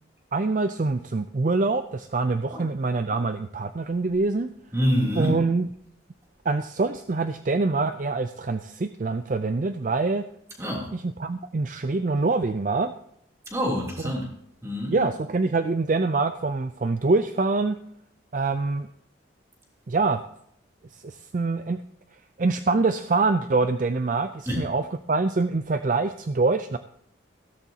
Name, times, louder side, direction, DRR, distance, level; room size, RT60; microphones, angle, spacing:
voice 1, 0.3-4.5 5.2-5.7 6.4-10.2 10.9-12.9 14.0-14.1 14.9-17.8 18.3-18.9 19.9-20.2 20.9-21.8 22.4-26.8, right 3 dB, 40° right, 9 dB, 0.4 m, -25 dB
voice 2, 4.7-5.4 10.6-10.9 13.5-14.3 14.6-15.0 24.4-24.6, equal, 15° right, -2 dB, 3.0 m, -26 dB
16.0 x 13.5 x 2.8 m, 0.72 s
head